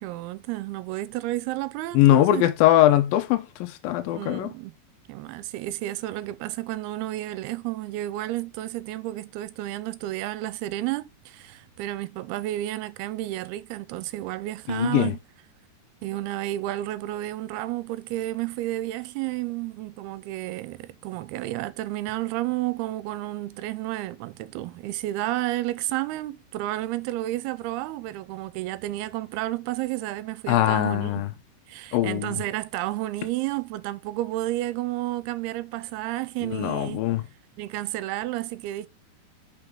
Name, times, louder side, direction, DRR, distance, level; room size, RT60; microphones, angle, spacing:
voice 1, 0.0-2.5 4.1-4.7 5.1-15.2 16.0-31.2 31.7-37.0 37.6-38.9, right 16 dB, 85° right, 2.5 m, -31 dB
voice 2, 1.9-4.5 14.7-15.1 30.5-31.3 31.9-32.3 36.4-37.2, left 13 dB, 80° left, 2.3 m, -21 dB
5.9 x 5.4 x 4.6 m
omnidirectional pair, 4.5 m